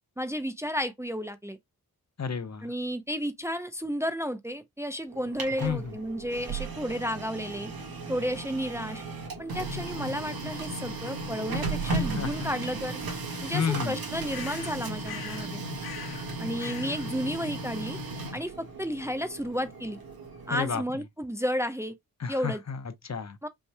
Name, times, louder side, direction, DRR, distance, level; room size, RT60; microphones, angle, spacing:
voice 1, 0.2-1.6 2.6-7.7 8.1-9.0 9.4-13.0 13.4-15.6 16.4-18.0 18.3-20.0 20.5-22.0 22.3-22.6 23.4-23.5, equal, 10° right, 0.6 m, -32 dB
voice 2, 2.2-2.7 5.6-5.9 12.1-12.5 13.5-14.0 20.5-20.8 22.2-23.4, left 7 dB, 45° left, 0.8 m, -31 dB
Printer, 5.1-20.9, right 3 dB, 75° right, 1.7 m, -36 dB
sound 1, 14.3-15.5 15.8-16.3 16.6-17.1, left 8 dB, 85° left, 0.8 m, -42 dB
5.4 x 3.1 x 2.2 m
cardioid pair, 50°, 36 cm